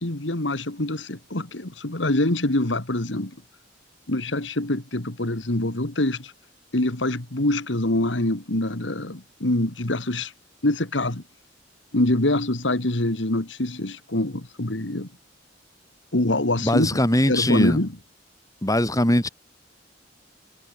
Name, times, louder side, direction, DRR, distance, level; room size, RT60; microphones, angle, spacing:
voice 1, 0.0-3.4 4.1-6.3 6.7-10.3 10.6-11.2 11.9-15.1 16.1-17.0 17.3-17.9, left 1 dB, 75° left, 2.4 m, -25 dB
voice 2, 16.6-17.8 18.6-19.3, left 1 dB, 20° left, 4.1 m, -21 dB
head